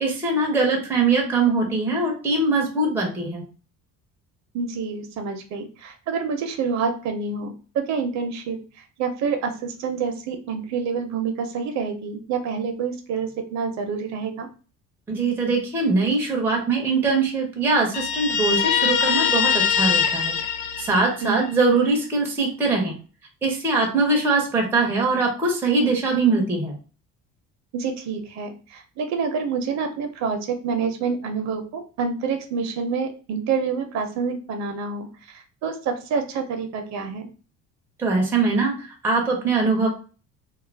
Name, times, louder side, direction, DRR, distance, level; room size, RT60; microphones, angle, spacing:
voice 1, 0.0-3.4 15.1-20.3 20.8-22.9 23.4-26.8 38.0-39.9, right 3 dB, 5° right, -1 dB, 0.4 m, -22 dB
voice 2, 4.5-8.6 9.0-14.5 21.2-21.5 27.7-37.3, right 5 dB, 60° right, 5 dB, 0.6 m, -27 dB
Guitar, 17.9-21.5, left 7 dB, 75° left, 0.5 m, -22 dB
2.3 x 2.1 x 3.2 m, 0.37 s
cardioid pair, 170°, 31 cm